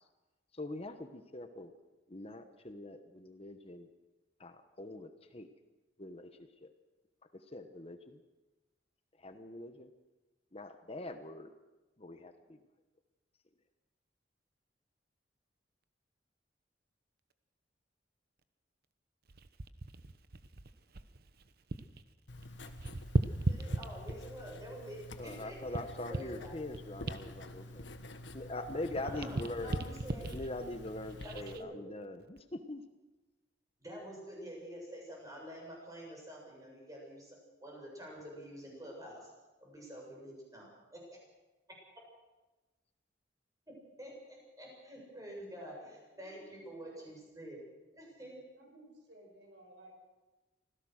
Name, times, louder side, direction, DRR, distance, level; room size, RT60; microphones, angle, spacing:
voice 1, 0.5-1.7 2.1-3.9 4.4-5.5 6.0-6.7 7.3-8.2 9.2-9.9 10.5-11.5 12.0-12.6 25.2-27.9 28.3-29.8 30.3-32.8, left 2 dB, 35° left, 8 dB, 1.1 m, -43 dB
sound 1, 19.3-22.0 22.3-24.4 25.0-28.5 28.8-31.6 32.2-32.4, right 2 dB, 55° right, 1.0 m, -38 dB
Writing, 22.3-31.6, left 1 dB, 85° left, 1.6 m, -49 dB
voice 2, 23.4-25.8 26.1-26.5 29.0-30.3 31.2-31.8 33.8-39.3 39.6-41.2 43.7-45.7 46.2-47.6 47.9-48.4, equal, 20° right, -2 dB, 7.5 m, -48 dB
voice 3, 45.6-47.2 48.5-49.9, right 1 dB, 80° right, 2 dB, 5.6 m, -56 dB
25.5 x 16.0 x 6.5 m, 1.1 s
head